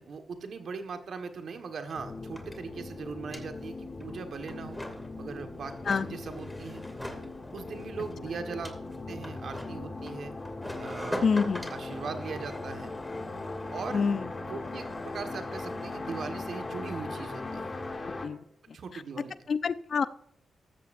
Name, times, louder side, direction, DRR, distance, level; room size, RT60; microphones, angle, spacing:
voice 1, 0.0-4.8 5.2-5.7 6.0-6.8 7.5-8.8 9.1-10.3 10.8-11.3 11.7-12.9 13.7-14.0 14.4-17.7 18.7-19.5, right 5 dB, 70° right, 6 dB, 1.6 m, -40 dB
sound 1, 1.2-1.3 1.4-18.1, left 1 dB, 10° left, 2.6 m, -44 dB
sound 2, 1.9-18.3, left 3 dB, 40° left, 2.7 m, -39 dB
voice 2, 11.2-11.7 13.9-14.3 18.2-18.4 19.5-20.0, left 5 dB, 65° left, 14 dB, 0.6 m, -26 dB
14.5 x 13.0 x 2.6 m, 0.70 s
supercardioid pair, 50°, 0 cm